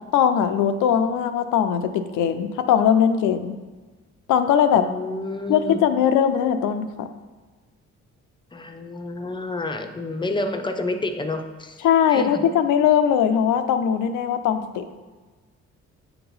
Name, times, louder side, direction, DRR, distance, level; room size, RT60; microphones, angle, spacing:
voice 1, 0.1-3.6 4.3-4.8 5.5-7.1 11.8-14.9, left 8 dB, 85° left, 8 dB, 0.6 m, -20 dB
voice 2, 4.7-5.8 8.5-11.8 12.1-12.4, left 2 dB, 15° left, 6 dB, 0.6 m, -29 dB
8.5 x 2.9 x 5.4 m, 1.3 s
cardioid pair, 90°, 30 cm